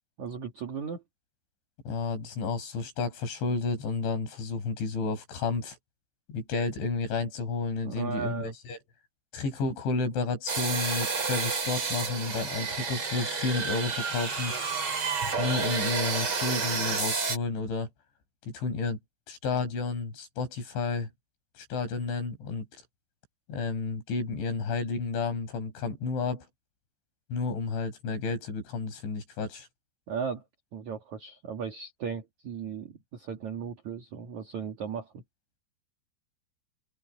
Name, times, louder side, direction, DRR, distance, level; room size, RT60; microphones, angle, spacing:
voice 1, 0.2-1.0 7.8-8.5 30.1-30.4 30.7-35.2, right 6 dB, 50° right, 2.8 m, -36 dB
voice 2, 1.9-5.8 6.3-8.8 9.3-14.5 15.4-17.9 18.5-19.0 19.3-21.1 21.6-22.7 23.5-26.4 27.3-29.7, left 4 dB, 80° left, 7.7 m, -31 dB
sound 1, 10.5-17.4, right 5 dB, 35° right, 4.0 m, -30 dB
omnidirectional pair, 5.2 m